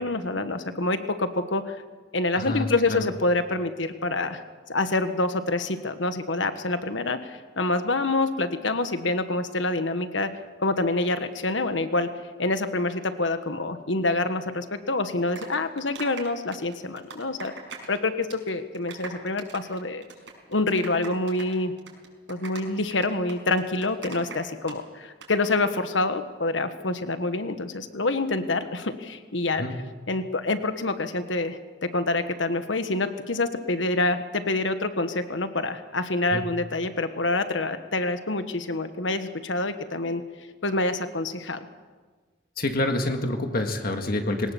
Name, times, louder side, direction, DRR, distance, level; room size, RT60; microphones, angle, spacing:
voice 1, 0.0-1.8 2.1-4.4 4.7-10.3 10.6-12.1 12.4-17.5 17.9-20.0 20.5-21.7 22.3-29.6 30.1-40.2 40.6-41.6, left 2 dB, 85° left, 9 dB, 1.4 m, -27 dB
voice 2, 2.4-3.1 29.6-29.8 36.3-36.4 42.6-44.5, left 1 dB, 50° left, 4 dB, 1.8 m, -27 dB
sound 1, 15.0-18.0 18.2-18.5 18.7-24.8 25.0-25.3, right 4 dB, 85° right, 5.9 m, -41 dB
22.0 x 19.0 x 7.2 m, 1.4 s
head